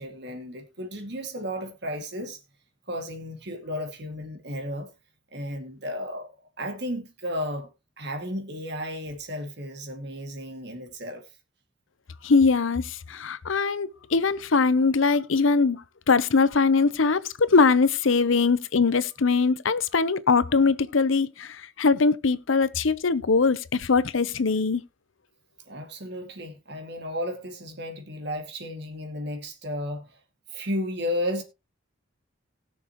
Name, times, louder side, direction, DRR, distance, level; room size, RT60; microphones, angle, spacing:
voice 1, 0.0-2.4 2.9-4.9 5.3-7.7 8.0-11.3 25.7-30.2 30.5-31.4, equal, 55° right, 2.1 m, -33 dB
voice 2, 12.2-24.8, left 4 dB, 80° left, 0.7 m, -22 dB
19.5 x 6.7 x 3.0 m
head